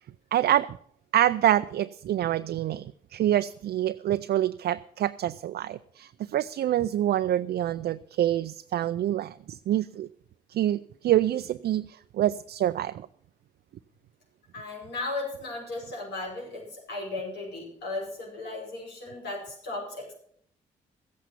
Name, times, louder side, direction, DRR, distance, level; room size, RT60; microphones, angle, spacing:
voice 1, 0.3-0.8 1.1-10.1 10.5-13.1, right 12 dB, 65° right, 11 dB, 0.5 m, -26 dB
voice 2, 14.5-20.1, left 2 dB, 75° left, -1 dB, 5.4 m, -36 dB
15.0 x 8.3 x 7.3 m, 0.65 s
hypercardioid pair, 45°, 18 cm